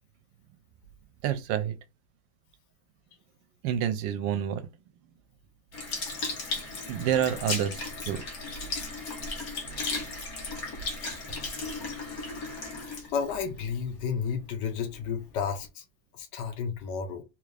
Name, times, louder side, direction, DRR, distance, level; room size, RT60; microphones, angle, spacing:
voice 1, 1.2-1.8 3.6-4.7 6.6-8.2, right 10 dB, 85° right, 1.3 m, -29 dB
Sink (filling or washing) / Liquid, 5.7-14.3 14.9-15.0, left 3 dB, 55° left, 1.6 m, -35 dB
voice 2, 13.1-15.8 16.1-17.2, left 6 dB, 75° left, 1.3 m, -32 dB
3.7 x 2.5 x 3.2 m
omnidirectional pair, 2.0 m